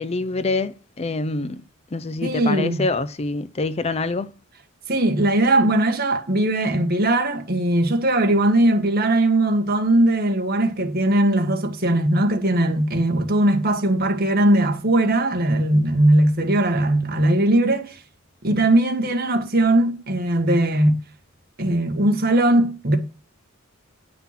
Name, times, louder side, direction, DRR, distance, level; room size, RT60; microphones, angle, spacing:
voice 1, 0.0-1.6 1.9-4.3, left 3 dB, 30° left, 0.5 m, -25 dB
voice 2, 2.2-2.9 4.9-18.0 18.4-21.0 21.6-23.0, right 1 dB, 45° right, 1.6 m, -19 dB
9.8 x 5.8 x 5.9 m
head